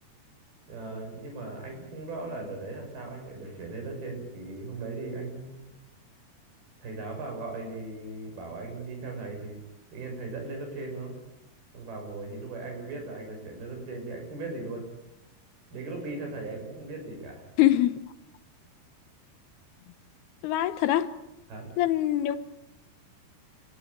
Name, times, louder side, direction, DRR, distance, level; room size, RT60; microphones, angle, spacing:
voice 1, 0.7-5.6 6.8-9.6 9.9-11.1 11.7-14.8 15.7-17.4 21.5-21.7, right 3 dB, 70° right, 3 dB, 8.4 m, -38 dB
voice 2, 17.6-18.0 20.4-21.1 21.8-22.4, left 13 dB, 80° left, 13 dB, 3.0 m, -23 dB
28.0 x 17.0 x 8.6 m, 0.93 s
omnidirectional pair, 4.6 m